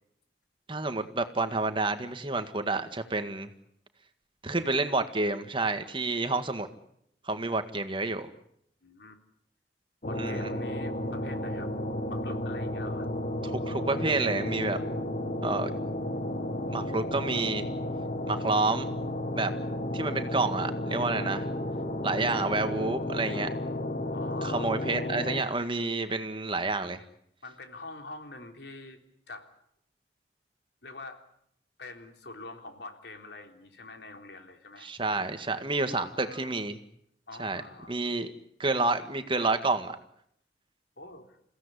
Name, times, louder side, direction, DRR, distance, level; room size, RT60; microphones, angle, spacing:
voice 1, 0.7-3.5 4.4-6.7 7.2-8.3 10.1-10.5 13.4-14.8 15.4-15.7 16.7-17.7 18.3-18.9 19.4-19.5 19.9-21.5 22.0-23.5 24.4-27.0 34.8-36.8 37.4-37.6 37.9-38.3 38.6-39.9, right 3 dB, 30° right, 8 dB, 1.8 m, -29 dB
voice 2, 8.8-9.2 10.1-11.7 12.1-13.1 24.1-24.7 27.4-29.0 29.3-29.5 30.8-31.2 31.8-34.9 35.9-36.6 37.3-38.0 41.0-41.4, left 3 dB, 75° left, 5 dB, 3.6 m, -45 dB
sound 1, 10.0-25.4, left 1 dB, 50° left, 1.7 m, -33 dB
29.0 x 16.5 x 9.9 m, 0.73 s
head